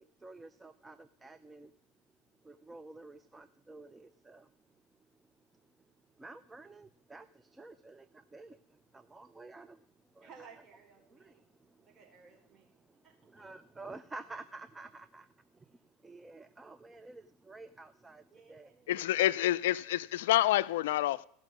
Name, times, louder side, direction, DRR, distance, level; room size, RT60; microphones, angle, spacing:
voice 1, 0.0-1.7 2.4-4.6 5.2-5.9 6.2-10.5 11.1-12.0 12.8-18.7, right 3 dB, 15° right, 0.5 m, -51 dB
voice 2, 10.2-11.5 11.8-12.8 13.0-13.3 18.3-19.2 19.5-19.7, right 5 dB, 30° right, 4.5 m, -58 dB
voice 3, 18.9-21.2, left 14 dB, 80° left, 0.3 m, -28 dB
16.0 x 6.1 x 6.1 m
hypercardioid pair, 95°, 0 cm